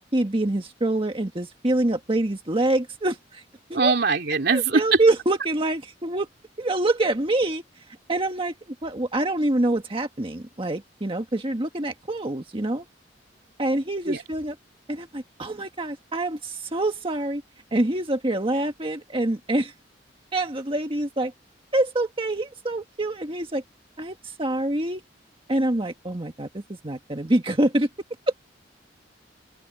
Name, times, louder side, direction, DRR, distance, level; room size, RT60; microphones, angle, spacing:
voice 1, 0.1-3.4 3.7-3.9 4.5-6.3 6.6-8.5 8.8-12.8 13.6-14.5 14.9-17.4 17.7-19.7 20.3-21.3 21.7-23.6 24.0-25.0 25.5-27.9 28.3-28.4, right 1 dB, 30° right, 1.5 m, -25 dB
voice 2, 3.7-5.0 14.1-14.2, right 4 dB, 60° right, 2.8 m, -21 dB
open air
head